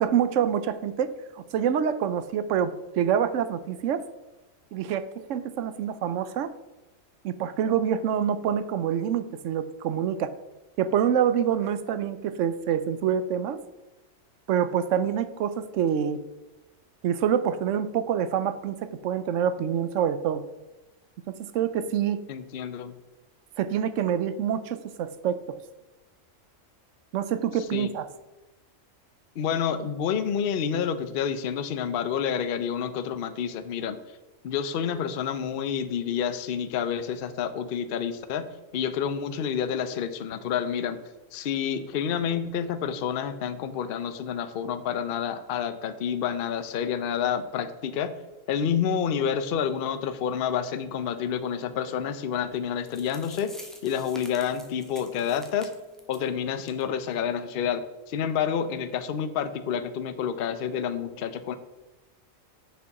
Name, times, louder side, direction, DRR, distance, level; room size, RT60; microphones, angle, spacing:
voice 1, 0.0-4.0 4.7-6.5 7.2-10.3 10.8-13.6 14.5-16.2 17.0-20.4 21.3-22.2 23.6-25.6 27.1-28.1, right 8 dB, 70° right, 13 dB, 0.9 m, -26 dB
voice 2, 22.3-22.9 27.7-27.9 29.4-34.0 34.4-38.5 38.7-41.0 41.3-48.1 48.5-53.5 53.8-55.7 56.1-61.6, left 8 dB, 55° left, 10 dB, 0.7 m, -29 dB
sound 1, 52.6-52.7 52.9-56.3 56.6-56.8 57.1-57.2 57.7-57.8, equal, ahead, 0.8 m, -48 dB
6.8 x 5.2 x 5.8 m, 1.1 s
omnidirectional pair, 1.4 m